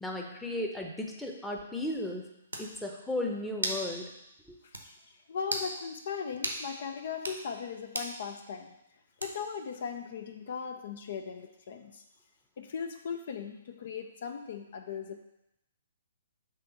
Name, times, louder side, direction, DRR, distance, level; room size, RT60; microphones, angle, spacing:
voice 1, 0.0-2.2 2.6-4.1 4.5-4.6, left 1 dB, 5° left, 0 dB, 0.8 m, -35 dB
sound 1, 2.5-2.7 3.6-3.9 4.2-4.3 4.7-4.9 5.4-5.7 6.4-6.6 7.1-7.4 7.9-8.2 9.2-9.6, right 2 dB, 80° right, 1.0 m, -34 dB
voice 2, 4.6-4.9 5.3-8.7 9.2-12.0 12.6-15.2, left 6 dB, 55° left, 6 dB, 0.5 m, -38 dB
6.1 x 3.3 x 5.7 m, 0.85 s
figure-of-eight pair, 125°, 0 cm